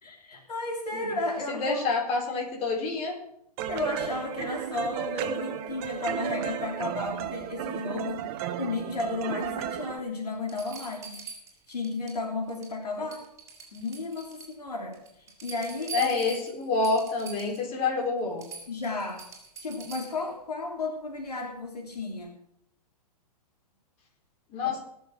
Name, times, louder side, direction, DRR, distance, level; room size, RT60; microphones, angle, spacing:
voice 1, 0.0-1.8 3.7-11.2 11.7-13.2 13.7-16.1 16.8-16.9 18.7-19.3 19.6-22.4, left 2 dB, 75° left, 1 dB, 3.1 m, -33 dB
voice 2, 1.5-3.1 15.9-18.4 24.5-24.8, left 3 dB, 30° left, 0 dB, 4.4 m, -28 dB
sound 1, 3.6-10.0, right 11 dB, 40° right, 1.3 m, -34 dB
sound 2, 9.8-9.9 10.5-12.2 12.5-12.8 13.1-14.5 14.9-17.7 18.0-18.1 18.4-20.3 22.0-22.1, right 5 dB, 15° right, 4.7 m, -43 dB
20.5 x 7.2 x 6.2 m, 0.76 s
figure-of-eight pair, 115°, 20 cm